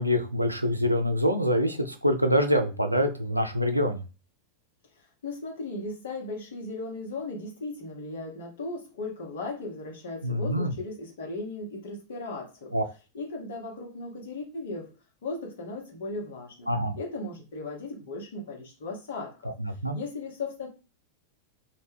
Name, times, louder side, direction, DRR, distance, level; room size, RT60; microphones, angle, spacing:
voice 1, 0.0-4.0 10.2-10.7 12.7-12.8 16.7-17.0 19.4-20.0, equal, 85° right, 0.3 m, -25 dB
voice 2, 5.2-12.7 13.1-15.0 15.2-19.5 19.9-20.7, left 2 dB, 60° left, 0.8 m, -37 dB
2.2 x 2.1 x 3.2 m
figure-of-eight pair, 90°, 0 cm